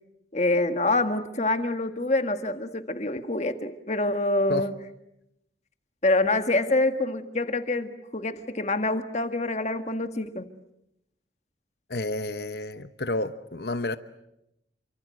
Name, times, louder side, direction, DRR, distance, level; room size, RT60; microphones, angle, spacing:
voice 1, 0.3-4.8 6.0-10.5, left 2 dB, 40° left, 8 dB, 1.8 m, -26 dB
voice 2, 11.9-14.0, left 2 dB, 60° left, 11 dB, 1.0 m, -30 dB
29.0 x 25.0 x 7.8 m, 0.83 s
head